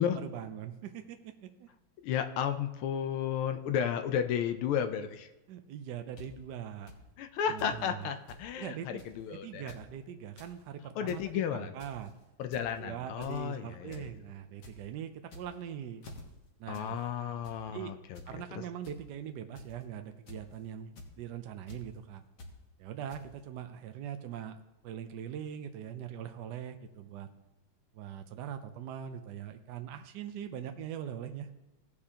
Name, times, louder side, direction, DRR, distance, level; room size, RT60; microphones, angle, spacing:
voice 1, 0.0-1.7 5.5-6.9 7.4-8.1 8.6-12.1 12.8-16.0 16.6-17.0 17.7-17.9 18.3-22.2 22.8-24.6 24.8-27.3 27.9-31.5, right 9 dB, 75° right, 7 dB, 1.0 m, -42 dB
voice 2, 2.0-5.3 7.2-8.8 9.2-9.7 11.0-11.7 12.4-14.1 16.7-18.6, left 8 dB, 80° left, 8 dB, 1.5 m, -33 dB
sound 1, 6.2-6.3 6.9-7.0 7.6-7.8 8.0-8.1 8.3-8.4 9.0-9.2 9.5-9.8 10.2-10.5 10.9-11.2 11.8-12.1 12.5-12.8 13.2-13.5 13.9-14.1 14.4-14.7 15.2-15.6 16.0-16.2 16.7-16.9 17.2-17.6 18.1-18.3 18.8-18.9 19.5-19.8 20.3-20.5 21.0-21.1 21.7-21.8 22.4-22.5 23.1-23.2, left 2 dB, 55° left, 1.8 m, -49 dB
17.0 x 6.7 x 2.8 m, 1.0 s
omnidirectional pair, 2.4 m